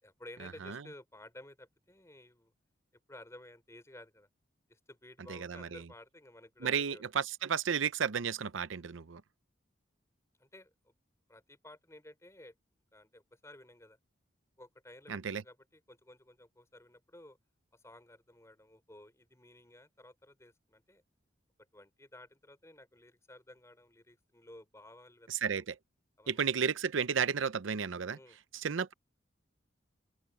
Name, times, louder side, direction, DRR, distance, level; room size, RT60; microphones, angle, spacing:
voice 1, 0.0-2.5 3.1-4.3 4.7-7.0 10.4-10.9 11.3-12.5 12.9-14.0 14.6-17.4 17.7-21.0 21.7-25.6 26.2-26.7 28.1-28.4, left 1 dB, 15° left, 3.7 m, -54 dB
voice 2, 5.3-5.8 6.6-9.2 15.1-15.4 25.3-25.8 26.3-28.2 28.5-28.9, right 7 dB, 80° right, 0.6 m, -33 dB
open air
head